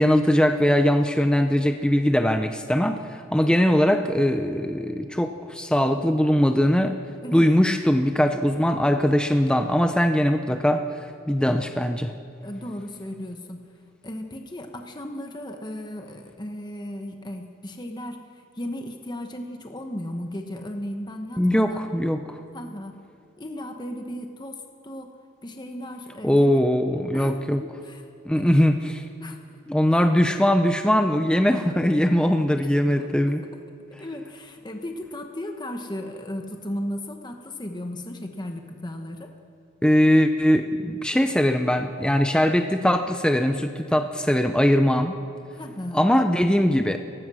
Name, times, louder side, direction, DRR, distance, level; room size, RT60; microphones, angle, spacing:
voice 1, 0.0-7.0 7.3-10.8 11.3-12.1 21.4-22.4 26.2-27.6 28.3-29.0 29.7-33.4 39.8-45.1 45.9-47.0, equal, 5° left, 6 dB, 0.6 m, -21 dB
voice 2, 7.2-7.6 12.4-13.6 14.0-21.9 22.5-23.0 23.4-25.1 25.4-26.6 27.1-28.1 28.3-28.5 29.2-29.5 29.9-30.0 31.5-32.0 32.6-32.7 33.0-33.3 34.0-39.3 45.5-46.1, left 1 dB, 20° left, 4 dB, 1.1 m, -36 dB
29.5 x 15.5 x 6.3 m, 2.5 s
head